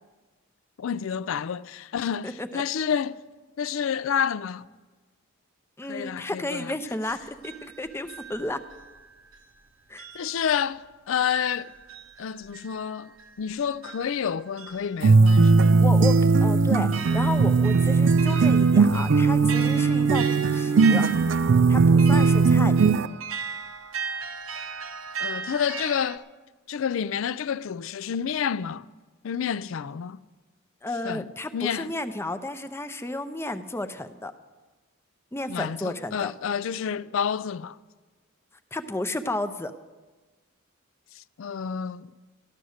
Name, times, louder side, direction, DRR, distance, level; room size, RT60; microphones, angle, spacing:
voice 1, 0.8-3.2 3.6-4.6 5.9-6.7 10.1-11.7 12.2-13.1 13.4-15.7 25.2-26.2 26.7-28.9 29.2-30.2 31.0-31.9 35.5-37.8 41.2-42.1, left 7 dB, 65° left, 0.4 m, -29 dB
voice 2, 2.2-2.6 5.8-8.6 9.9-10.0 15.6-21.1 21.7-22.9 30.8-34.3 35.3-36.3 38.7-39.7, left 2 dB, 10° left, 0.5 m, -32 dB
sound 1, 7.1-9.6 10.0-26.2, right 6 dB, 75° right, 0.8 m, -38 dB
sound 2, 15.0-23.1, right 4 dB, 55° right, 0.4 m, -19 dB
13.5 x 11.0 x 6.4 m
head